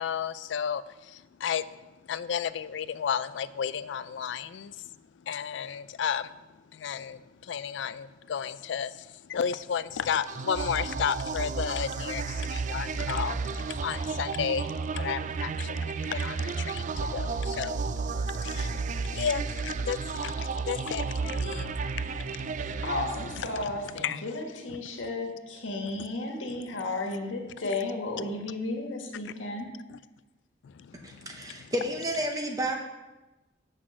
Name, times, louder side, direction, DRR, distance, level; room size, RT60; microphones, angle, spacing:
voice 1, 0.0-1.8 2.1-4.9 5.3-6.4 6.7-22.9 23.4-24.2 24.7-25.0 26.0-26.1 29.9-30.0 30.6-31.6, left 7 dB, 65° left, 0.3 m, -33 dB
sound 1, 10.3-23.9, right 4 dB, 40° right, 0.3 m, -32 dB
voice 2, 22.8-29.7, left 2 dB, 85° left, 1.5 m, -33 dB
voice 3, 31.0-32.8, right 1 dB, 20° right, 0.8 m, -31 dB
7.6 x 6.1 x 6.3 m
head